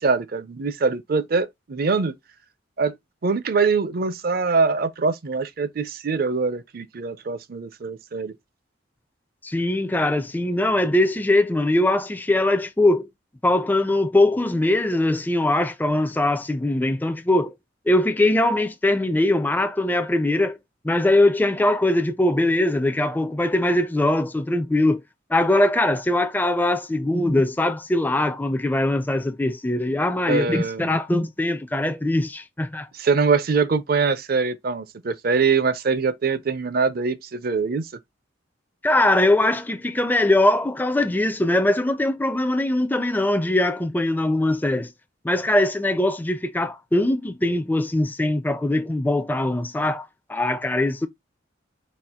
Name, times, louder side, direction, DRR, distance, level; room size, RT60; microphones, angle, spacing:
voice 1, 0.0-2.1 2.8-3.0 3.2-8.3 30.3-30.9 32.9-37.9, right 4 dB, 50° right, 0.5 m, -23 dB
voice 2, 9.4-13.1 13.4-17.5 17.9-20.6 20.8-25.0 25.3-32.9 38.8-44.9 45.2-51.1, left 1 dB, 10° left, 0.4 m, -21 dB
4.3 x 2.4 x 3.5 m
head